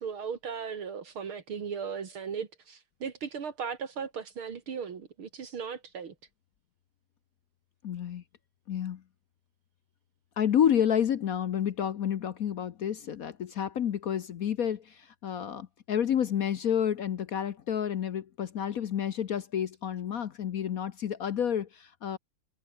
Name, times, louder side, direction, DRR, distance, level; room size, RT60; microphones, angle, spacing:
voice 1, 0.0-6.1, right 6 dB, 75° right, 3.1 m, -37 dB
voice 2, 7.8-8.2 8.7-9.0 10.4-22.2, left 9 dB, 60° left, 1.0 m, -30 dB
omnidirectional pair, 2.4 m